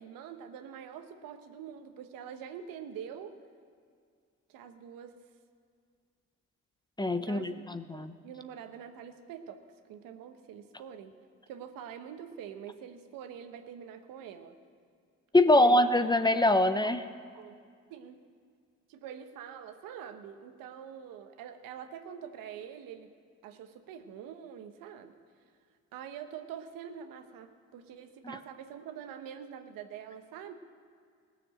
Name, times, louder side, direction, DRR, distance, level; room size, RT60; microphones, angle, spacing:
voice 1, 0.0-3.4 4.5-5.1 7.2-9.6 9.9-11.1 11.5-14.6 15.4-15.8 16.8-16.9 17.3-17.6 17.9-18.2 18.9-23.1 23.4-25.1 25.9-30.5, right 8 dB, 80° right, 8 dB, 1.0 m, -45 dB
voice 2, 7.0-8.1 15.3-17.0 28.2-28.4, left 1 dB, 15° left, 10 dB, 0.6 m, -24 dB
17.5 x 7.0 x 7.6 m, 2.1 s
supercardioid pair, 70°, 33 cm